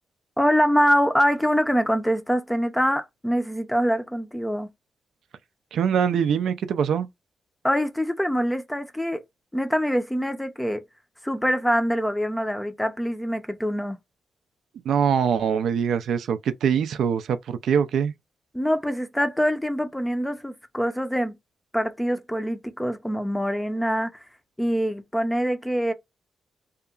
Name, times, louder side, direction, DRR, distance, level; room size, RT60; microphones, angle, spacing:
voice 1, 0.4-4.7 7.6-9.2 9.5-10.8 11.2-14.0 18.5-21.3 21.7-24.2 24.6-25.9, equal, 5° left, 0.4 m, -24 dB
voice 2, 5.7-7.1 14.9-18.1, right 7 dB, 80° right, 0.3 m, -23 dB
2.8 x 2.4 x 2.3 m
cardioid pair, 110°, 0 cm